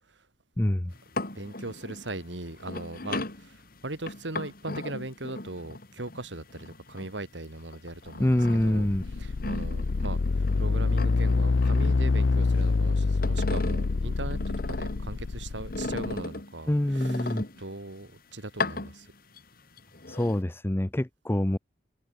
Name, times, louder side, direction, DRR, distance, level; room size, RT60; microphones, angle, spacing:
voice 1, 0.6-0.9 8.2-9.0 16.7-17.4 20.1-21.6, left 1 dB, 15° left, 0.6 m, -25 dB
sound 1, 0.9-7.3 7.7-10.6 10.9-12.7 13.0-15.2 15.7-17.9 18.5-19.4 19.8-20.4, left 2 dB, 55° left, 3.5 m, -37 dB
voice 2, 1.3-8.3 8.6-8.9 9.2-19.1, right 2 dB, 90° right, 2.6 m, -39 dB
sound 2, 8.6-16.2, left 3 dB, 80° left, 0.6 m, -26 dB
head